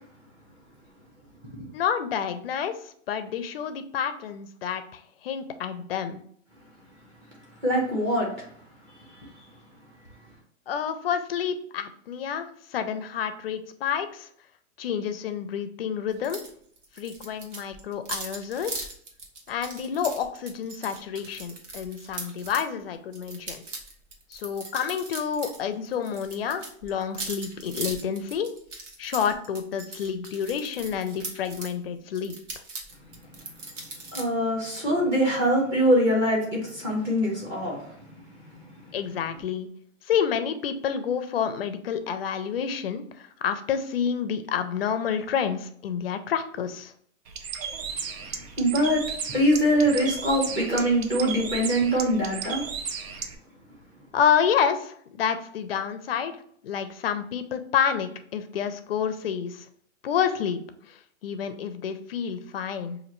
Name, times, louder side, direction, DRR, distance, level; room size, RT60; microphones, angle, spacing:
voice 1, 1.7-6.2 10.7-14.3 14.8-16.4 17.0-18.9 19.5-23.6 24.3-28.5 29.0-32.4 38.9-39.7 40.0-46.9 54.1-56.3 56.6-59.6 60.0-63.0, left 7 dB, 50° left, 9 dB, 0.4 m, -29 dB
voice 2, 7.6-8.5 34.0-38.0 48.4-49.0 49.3-52.6, equal, 10° right, -3 dB, 0.8 m, -23 dB
sound 1, 16.2-16.5 16.8-22.7 23.1-25.6 25.8-31.7 32.1-34.2, right 3 dB, 60° right, 1.2 m, -39 dB
Bird, 47.3-53.3, right 6 dB, 90° right, 0.7 m, -35 dB
5.0 x 2.6 x 2.9 m, 0.63 s
hypercardioid pair, 170°, 40 cm